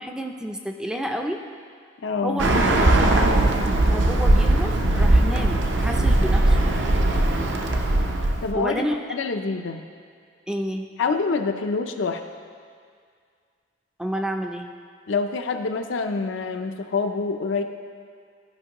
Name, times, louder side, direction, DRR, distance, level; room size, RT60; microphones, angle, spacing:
voice 1, 0.0-1.4 2.2-2.5 2.9-3.1 3.8-6.6 8.5-9.0 10.5-10.9 14.0-14.7, equal, 5° right, 3 dB, 0.4 m, -29 dB
voice 2, 2.0-2.4 8.4-8.8 9.1-9.9 11.0-12.2 15.1-17.6, left 4 dB, 75° left, 6 dB, 0.5 m, -26 dB
Bird, 2.4-8.5, right 1 dB, 70° right, 0.6 m, -19 dB
13.5 x 5.2 x 2.9 m, 2.1 s
head